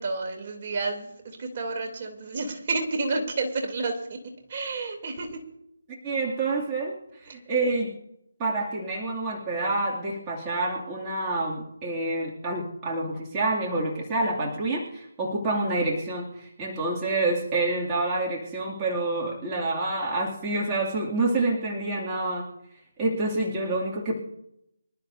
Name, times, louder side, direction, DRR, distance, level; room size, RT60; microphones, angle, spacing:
voice 1, 0.0-5.4 24.0-24.1, right 3 dB, 40° right, 2 dB, 3.0 m, -30 dB
voice 2, 6.0-6.9 7.2-7.9 8.4-22.5 23.0-24.1, right 2 dB, 15° right, -4 dB, 2.4 m, -27 dB
25.5 x 12.5 x 2.7 m, 0.78 s
figure-of-eight pair, 160°, 0 cm